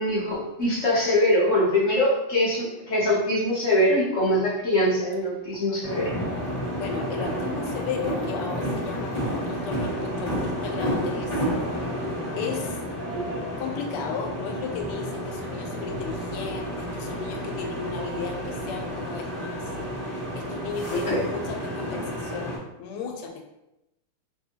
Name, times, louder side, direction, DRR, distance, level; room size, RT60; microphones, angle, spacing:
voice 1, 0.0-6.1 13.1-13.4 20.9-21.2, left 1 dB, 70° left, -8 dB, 0.7 m, -23 dB
sound 1, 5.8-22.6, equal, 20° left, 1.2 m, -31 dB
voice 2, 6.8-11.4 11.6-11.9 12.4-12.8 13.6-23.5, left 6 dB, 85° left, 3 dB, 1.5 m, -35 dB
3.3 x 2.7 x 2.8 m, 0.91 s
omnidirectional pair, 2.4 m